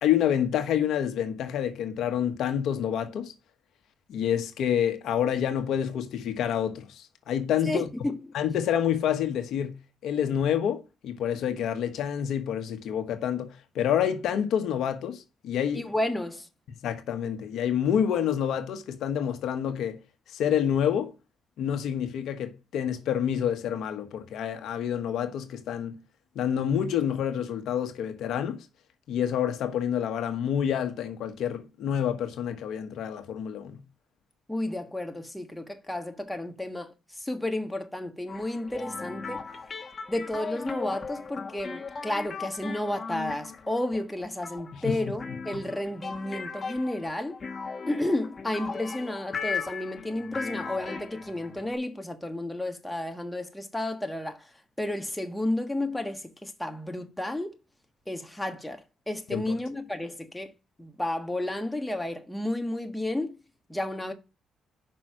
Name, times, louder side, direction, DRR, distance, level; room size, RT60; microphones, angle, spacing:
voice 1, 0.0-3.3 4.1-7.9 8.3-15.9 16.7-20.0 20.3-21.1 21.6-26.0 26.3-28.6 29.1-33.8 44.7-45.6 59.3-59.5, left 9 dB, 80° left, 1.2 m, -28 dB
voice 2, 7.6-8.2 15.7-16.5 34.5-39.4 40.1-47.4 47.9-54.5 54.8-57.5 58.1-60.5 60.8-63.4 63.7-64.1, left 1 dB, 10° left, 1.5 m, -32 dB
sound 1, 38.3-51.8, left 5 dB, 40° left, 1.6 m, -38 dB
6.0 x 5.5 x 6.1 m
cardioid pair, 90°, 0 cm